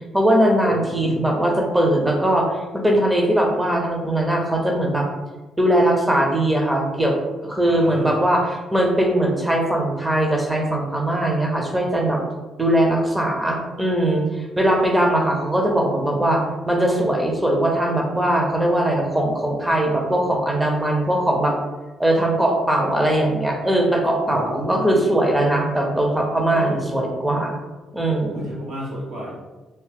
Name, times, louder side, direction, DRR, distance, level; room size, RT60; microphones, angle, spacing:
voice 1, 0.1-5.1 5.6-7.2 7.4-12.2 12.6-21.6 22.0-27.5 27.9-28.4, right 1 dB, 10° right, 1 dB, 0.6 m, -20 dB
voice 2, 0.7-1.2 7.6-8.2 24.3-25.2 26.5-26.8 28.1-29.3, equal, 80° right, -7 dB, 1.4 m, -32 dB
2.8 x 2.0 x 3.5 m, 1.2 s
cardioid pair, 90°, 0 cm